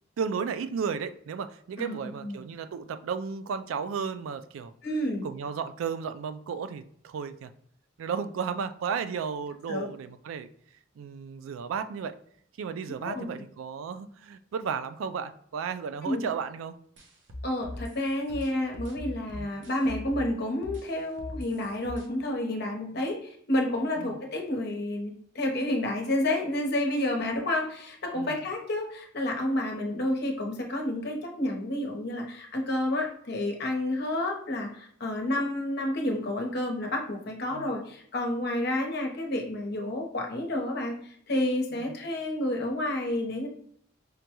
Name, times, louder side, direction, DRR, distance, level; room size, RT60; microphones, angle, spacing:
voice 1, 0.2-4.7 5.2-7.5 8.0-10.5 11.0-12.2 12.6-16.7 19.4-19.5 24.0-24.2 28.1-28.4 37.5-37.7 41.7-41.9, right 6 dB, 85° right, 11 dB, 0.3 m, -34 dB
voice 2, 1.8-2.4 4.8-5.3 9.7-9.9 13.0-13.3 16.0-16.2 17.4-43.5, left 1 dB, 55° left, 1 dB, 0.8 m, -30 dB
sound 1, 17.0-20.3 20.6-22.1, left 1 dB, 65° right, 0.7 m, -40 dB
5.0 x 2.2 x 2.9 m, 0.63 s
head